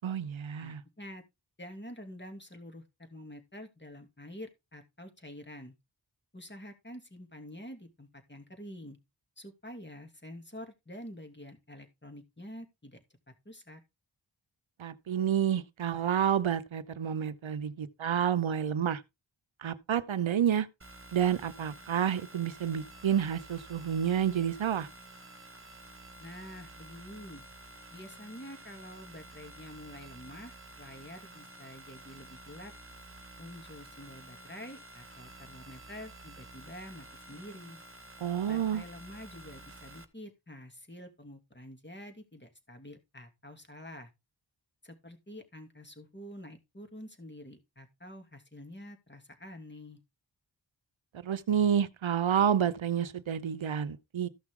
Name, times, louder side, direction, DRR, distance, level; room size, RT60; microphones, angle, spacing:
voice 1, 0.0-0.8 14.8-19.0 19.6-20.7 21.1-24.9 38.2-38.8 51.2-54.3, right 9 dB, 90° right, 0.8 m, -29 dB
voice 2, 0.6-1.2 1.6-5.7 6.3-9.0 9.4-13.0 13.4-13.8 26.2-27.4 27.9-32.7 33.4-37.8 38.5-44.1 44.8-50.0, left 1 dB, 25° left, 2.7 m, -47 dB
sound 1, 20.8-40.1, right 1 dB, 25° right, 1.7 m, -51 dB
14.5 x 6.0 x 3.7 m
cardioid pair, 40°, 46 cm